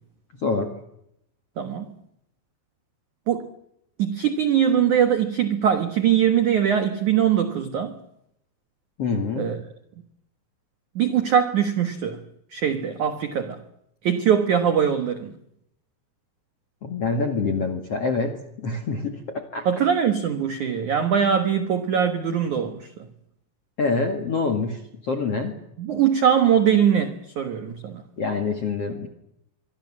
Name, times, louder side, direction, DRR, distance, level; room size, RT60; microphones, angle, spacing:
voice 1, 0.4-0.7 9.0-9.6 16.8-19.7 23.8-25.6 28.2-29.1, left 4 dB, 50° left, 1.8 m, -26 dB
voice 2, 1.6-1.9 3.3-3.5 4.0-8.0 9.4-9.6 11.0-12.2 12.5-13.6 14.0-15.3 19.7-22.9 25.8-28.0, right 8 dB, 75° right, 1.7 m, -22 dB
25.0 x 24.5 x 7.5 m
omnidirectional pair, 5.8 m